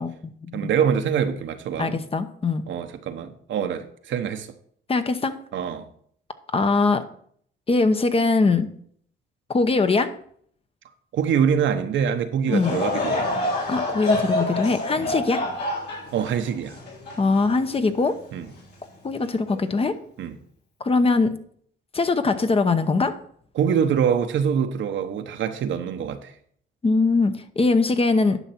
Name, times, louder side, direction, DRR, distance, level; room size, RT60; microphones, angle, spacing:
voice 1, 0.0-0.7 1.8-2.6 4.9-5.3 6.5-7.0 7.7-8.7 9.5-10.1 12.5-12.8 13.7-15.4 17.2-18.2 19.0-19.9 20.8-21.3 21.9-23.1 26.8-28.4, left 3 dB, 30° left, 0.8 m, -21 dB
voice 2, 0.5-2.0 2.7-4.5 5.5-5.8 11.1-13.3 15.0-15.1 16.1-16.8 18.3-18.5 20.2-20.3 23.5-26.3, right 7 dB, 70° right, 1.0 m, -24 dB
Laughter / Crowd, 12.5-18.0 18.5-18.6 19.5-19.7, left 1 dB, 60° left, 3.9 m, -27 dB
11.0 x 5.8 x 4.4 m
cardioid pair, 90°, 20 cm